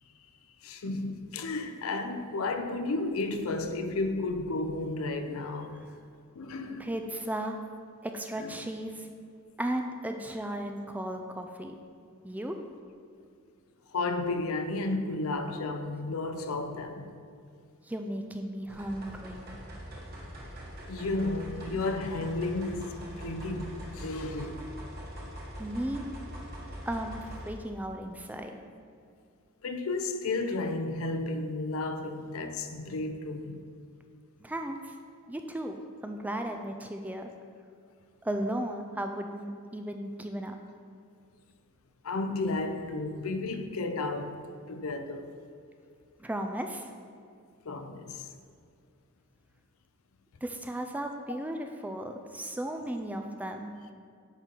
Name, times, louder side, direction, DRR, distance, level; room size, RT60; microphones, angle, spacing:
voice 1, 0.6-5.8 6.4-6.9 8.4-8.5 13.9-17.1 20.9-24.6 29.6-33.6 42.0-44.4 44.6-45.3 47.7-48.3, left 2 dB, 70° left, 0.6 m, -33 dB
voice 2, 6.8-7.6 8.0-9.1 9.6-11.7 12.2-12.6 17.9-19.4 25.6-26.0 26.9-28.6 34.4-34.9 35.3-35.7 36.0-37.3 38.2-40.6 46.2-46.9 50.4-53.7, right 1 dB, 5° right, 0.4 m, -35 dB
sound 1, 18.7-27.5, equal, 50° right, 1.4 m, -43 dB
9.9 x 3.9 x 4.5 m
head